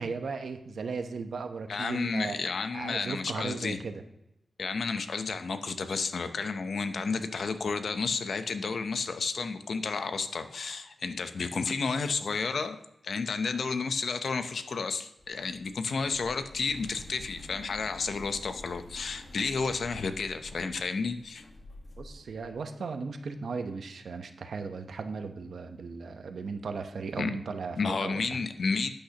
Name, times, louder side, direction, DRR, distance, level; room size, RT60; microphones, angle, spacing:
voice 1, 0.0-2.4 2.7-4.0 22.0-28.4, right 4 dB, 80° right, 7 dB, 0.9 m, -36 dB
voice 2, 1.7-3.8 4.6-21.4 27.2-27.3 27.8-28.9, left 4 dB, 70° left, 9 dB, 0.7 m, -31 dB
sound 1, 15.2-22.5, left 1 dB, 45° left, 1.5 m, -49 dB
11.5 x 8.8 x 2.9 m, 0.84 s
wide cardioid pair, 105°, 0 cm